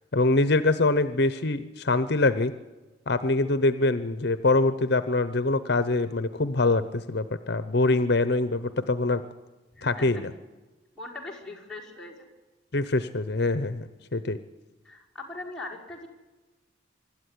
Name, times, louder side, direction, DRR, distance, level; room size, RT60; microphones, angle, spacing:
voice 1, 0.1-2.5 3.1-9.2 9.8-10.3 12.7-14.4, left 2 dB, 60° left, 12 dB, 0.8 m, -24 dB
voice 2, 9.7-10.2 10.9-12.3 14.8-16.1, left 2 dB, 5° left, -5 dB, 5.1 m, -40 dB
25.0 x 12.5 x 10.0 m, 1.2 s
head